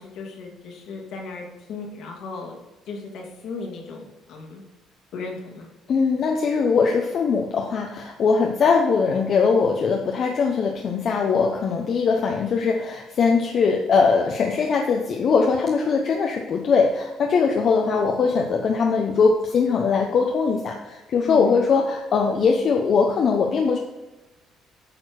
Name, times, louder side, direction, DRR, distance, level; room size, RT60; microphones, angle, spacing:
voice 1, 0.0-2.5 2.9-4.6 5.1-5.7 21.3-21.6, left 4 dB, 70° left, 1 dB, 2.2 m, -35 dB
voice 2, 5.9-23.8, left 5 dB, 50° left, 1 dB, 1.0 m, -21 dB
8.7 x 4.4 x 6.5 m, 1.1 s
cardioid pair, 105°, 0 cm